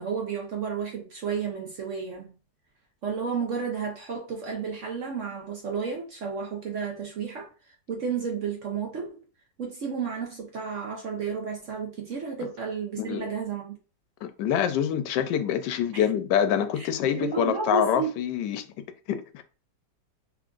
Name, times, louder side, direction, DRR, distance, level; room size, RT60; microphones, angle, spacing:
voice 1, 0.0-2.3 3.0-7.5 7.9-9.2 9.6-13.7 15.9-16.0 16.7-16.9 17.2-18.1, right 6 dB, 60° right, 0.8 m, -32 dB
voice 2, 14.2-18.6 19.1-19.4, left 9 dB, 80° left, 1.2 m, -26 dB
3.4 x 2.5 x 3.7 m
omnidirectional pair, 1.9 m